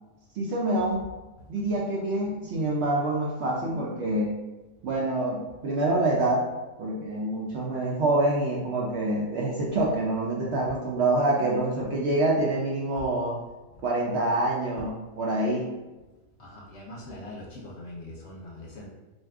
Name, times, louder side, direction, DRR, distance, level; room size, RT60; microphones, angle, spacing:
voice 1, 0.4-1.0 1.5-4.3 4.8-6.5 6.8-13.3 13.8-15.7, right 2 dB, 65° right, -3 dB, 0.7 m, -26 dB
voice 2, 16.4-18.9, left 1 dB, 60° left, -3 dB, 0.8 m, -42 dB
2.6 x 2.3 x 3.4 m, 1.1 s
omnidirectional pair, 1.4 m